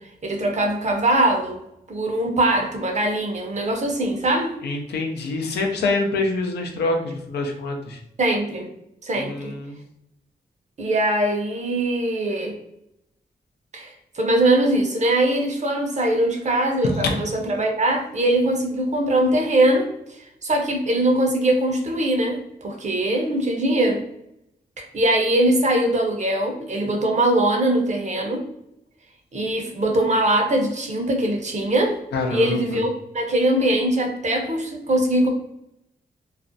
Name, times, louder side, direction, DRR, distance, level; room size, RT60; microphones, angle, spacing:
voice 1, 0.2-1.6 1.9-4.5 8.2-8.7 9.0-9.5 10.8-12.6 13.7-24.0 24.8-28.4 29.3-32.0 32.3-32.9 33.1-35.3, right 1 dB, 45° right, 3 dB, 0.7 m, -21 dB
voice 2, 4.6-8.0 9.2-9.8 17.0-17.1 32.1-32.8, left 3 dB, 90° left, 2 dB, 0.5 m, -25 dB
2.4 x 2.1 x 2.5 m, 0.81 s
cardioid pair, 50°, 17 cm